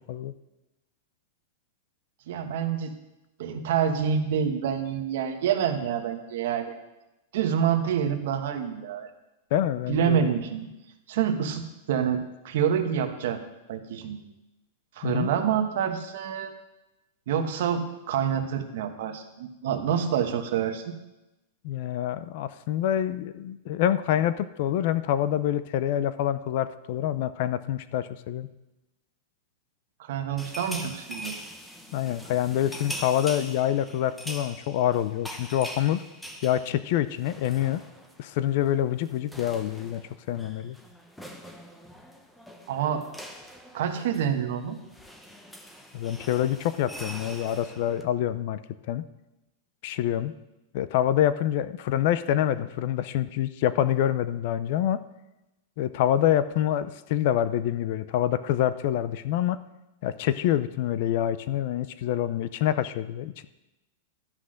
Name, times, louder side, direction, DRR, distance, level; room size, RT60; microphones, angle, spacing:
voice 1, 2.3-2.9 3.4-6.7 7.3-9.1 9.9-10.7 11.1-11.6 11.9-13.4 13.7-14.2 15.0-16.5 17.3-20.8 30.0-31.3 42.7-43.1 43.7-44.8, right 8 dB, 60° right, 7 dB, 1.2 m, -27 dB
voice 2, 9.5-10.3 15.0-15.3 21.6-28.5 31.9-36.0 36.4-37.8 38.2-40.0 40.3-40.8 45.9-48.6 48.9-49.0 49.8-50.3 50.7-55.0 55.8-59.6 60.0-63.4, left 11 dB, 45° left, 14 dB, 0.5 m, -26 dB
sound 1, 30.4-38.3 38.5-38.7 39.0-48.0, equal, 5° left, 0.7 m, -43 dB
12.5 x 5.9 x 6.4 m, 0.99 s
supercardioid pair, 165°, 0 cm